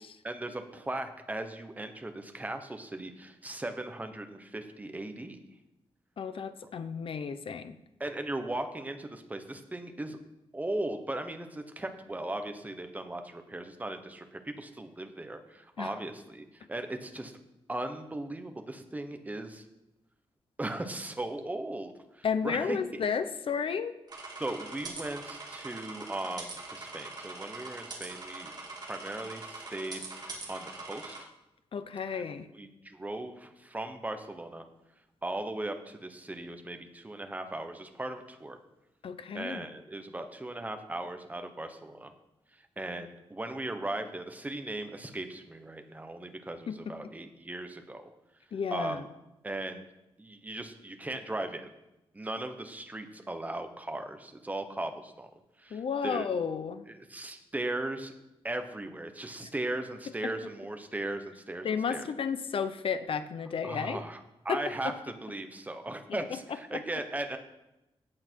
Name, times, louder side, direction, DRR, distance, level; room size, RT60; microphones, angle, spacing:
voice 1, 0.2-5.4 8.0-10.2 10.5-17.3 17.7-19.6 20.6-22.8 24.4-28.5 28.8-31.3 32.1-32.2 32.5-34.6 35.2-38.6 39.3-42.1 42.8-48.1 48.7-49.1 49.4-49.8 50.2-51.7 52.1-55.3 55.6-56.3 56.9-58.1 58.4-62.1 63.6-64.2 64.4-64.9 65.2-67.4, right 1 dB, 15° right, 6 dB, 1.0 m, -38 dB
voice 2, 6.2-7.8 15.8-15.9 22.2-24.0 31.7-32.5 39.0-39.7 46.7-46.9 48.5-49.1 55.7-56.9 60.2-60.3 61.6-64.0 64.5-64.9 66.3-66.4 66.7-66.8, left 6 dB, 60° left, 11 dB, 0.7 m, -32 dB
sound 1, 24.1-31.2, right 3 dB, 40° right, 2.7 m, -43 dB
16.5 x 8.6 x 4.6 m, 0.92 s
wide cardioid pair, 165°, 10 cm